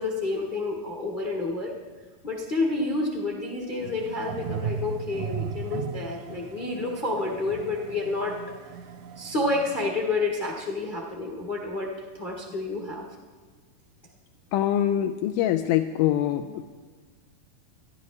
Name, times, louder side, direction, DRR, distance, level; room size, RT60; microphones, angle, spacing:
voice 1, 0.0-1.7 2.2-8.4 9.2-13.0, left 2 dB, 35° left, -1 dB, 0.8 m, -29 dB
sound 1, 3.8-9.9, right 6 dB, 80° right, 1.7 m, -36 dB
voice 2, 14.5-16.6, left 11 dB, 80° left, 6 dB, 1.9 m, -24 dB
24.5 x 11.5 x 3.2 m, 1.5 s
omnidirectional pair, 4.0 m